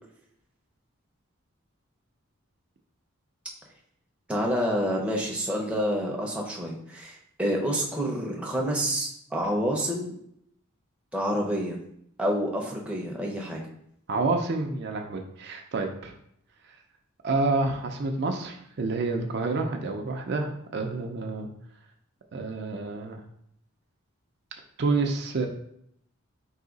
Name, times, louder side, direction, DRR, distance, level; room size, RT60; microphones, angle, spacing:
voice 1, 4.3-10.1 11.1-11.8 12.2-13.6, equal, 5° right, -2 dB, 0.6 m, -28 dB
voice 2, 14.1-16.1 17.2-21.5 22.3-23.2 24.8-25.5, right 3 dB, 50° right, 3 dB, 0.4 m, -28 dB
4.7 x 2.7 x 3.9 m, 0.72 s
head